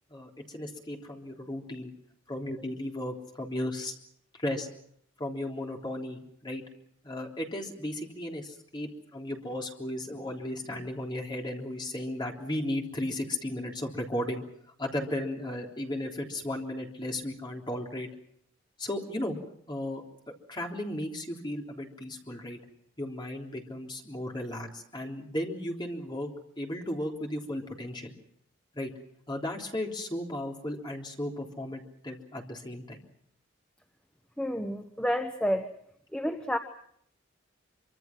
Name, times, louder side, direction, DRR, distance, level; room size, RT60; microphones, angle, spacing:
voice 1, 0.1-1.9 2.3-3.9 4.4-4.7 5.2-6.6 7.0-14.4 14.8-18.1 18.8-19.4 19.7-20.0 20.5-22.6 23.0-26.3 26.6-28.2 28.7-28.9 29.3-33.0, left 1 dB, 25° left, 1 dB, 3.5 m, -35 dB
voice 2, 34.4-35.7 36.1-36.6, equal, 5° left, 5 dB, 1.1 m, -29 dB
26.0 x 25.0 x 6.0 m, 0.69 s
head